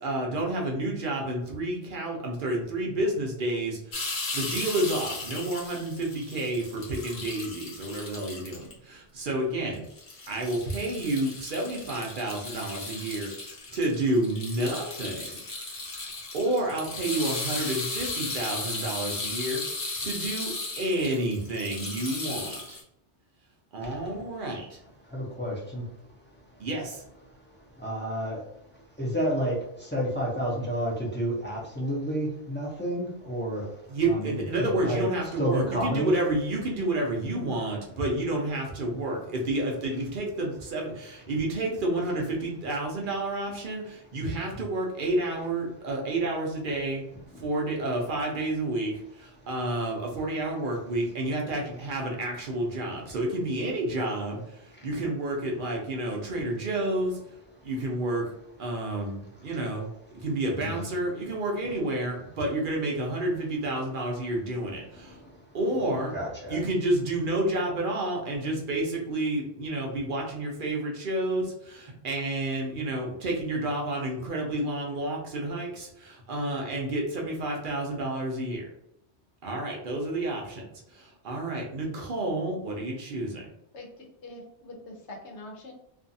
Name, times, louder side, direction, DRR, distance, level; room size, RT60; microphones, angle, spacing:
voice 1, 0.0-4.0 4.3-9.8 10.3-13.3 13.7-15.4 16.3-19.6 20.0-22.8 23.7-24.8 26.6-27.0 33.9-47.0 47.4-57.2 57.6-58.3 58.6-59.9 60.1-65.1 65.5-66.1 66.5-78.6 79.4-80.6 80.9-83.5, right 1 dB, 55° right, 0 dB, 0.7 m, -30 dB
sound 1, 3.9-8.7 9.3-9.4 9.7-22.8, left 3 dB, 50° left, 0.9 m, -36 dB
voice 2, 23.8-24.4 25.0-26.7 27.4-36.1 44.5-44.7 47.2-47.5 49.4-49.5 54.7-54.9 57.5-57.7 59.3-59.6 60.1-60.2 60.6-60.7 64.9-65.6 66.1-66.6, equal, 15° left, -5 dB, 0.5 m, -32 dB
voice 3, 83.7-85.7, left 2 dB, 85° left, 1 dB, 1.0 m, -44 dB
2.6 x 2.4 x 2.6 m, 0.79 s
omnidirectional pair, 1.1 m